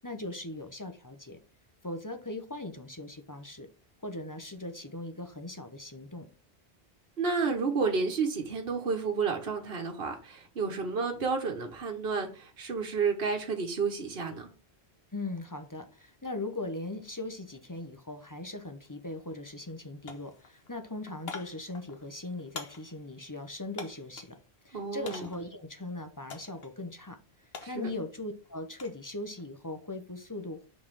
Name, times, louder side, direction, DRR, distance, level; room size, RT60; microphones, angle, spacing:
voice 1, 0.0-1.4 1.8-3.7 4.0-6.3 15.1-24.4 24.6-27.2 27.7-30.7, left 2 dB, 20° left, 8 dB, 0.7 m, -39 dB
voice 2, 7.2-14.5 24.7-25.2 27.6-27.9, right 5 dB, 70° right, 3 dB, 1.4 m, -31 dB
sound 1, 18.8-19.0 19.3-19.8 20.1-24.4 25.1-25.6 26.3-26.7 27.0-29.0 29.4-29.8, left 5 dB, 70° left, 1.4 m, -46 dB
5.5 x 4.2 x 6.1 m, 0.35 s
omnidirectional pair, 1.0 m